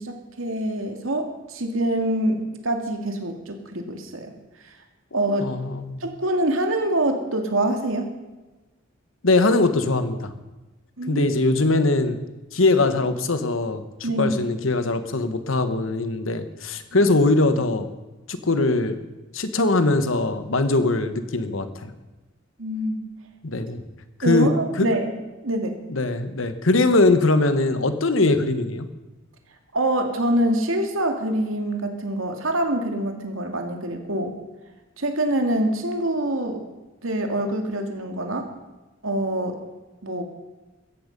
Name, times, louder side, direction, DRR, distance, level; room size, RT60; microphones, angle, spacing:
voice 1, 0.0-4.3 5.1-5.5 6.0-8.1 11.0-11.3 14.0-14.4 22.6-23.0 24.2-25.1 25.4-25.7 29.7-34.3 35.0-36.6 37.0-38.5 39.0-39.6 40.0-40.2, right 1 dB, 80° right, 4 dB, 2.3 m, -25 dB
voice 2, 5.4-6.0 9.2-10.3 11.1-12.2 12.5-13.8 14.2-17.9 18.3-19.0 19.3-21.9 23.4-23.8 24.2-24.5 24.8-24.9 25.9-28.9, left 2 dB, 70° left, 10 dB, 1.4 m, -21 dB
16.5 x 14.0 x 5.4 m, 1.1 s
head